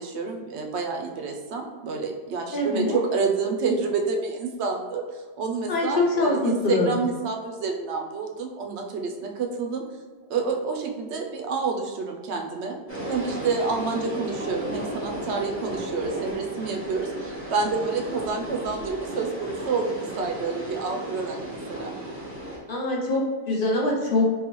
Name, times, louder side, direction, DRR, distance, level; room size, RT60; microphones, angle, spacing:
voice 1, 0.0-9.9 10.3-12.8 13.1-22.0, right 4 dB, 75° right, 3 dB, 0.9 m, -28 dB
voice 2, 2.5-3.0 5.7-7.0 22.7-24.4, left 2 dB, 55° left, -2 dB, 0.8 m, -24 dB
sound 1, 12.9-22.6, right 1 dB, 15° right, 0.8 m, -34 dB
3.8 x 2.7 x 3.0 m, 1.4 s
omnidirectional pair, 1.1 m